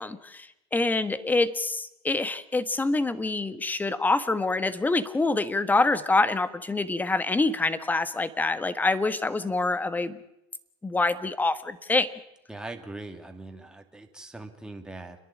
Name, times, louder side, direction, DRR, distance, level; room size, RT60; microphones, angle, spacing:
voice 1, 0.0-10.2 10.8-12.1, left 3 dB, 15° left, 13 dB, 1.4 m, -26 dB
voice 2, 12.5-15.2, right 2 dB, 5° right, 4 dB, 2.6 m, -41 dB
29.5 x 11.0 x 8.6 m, 0.83 s
supercardioid pair, 105°, 12 cm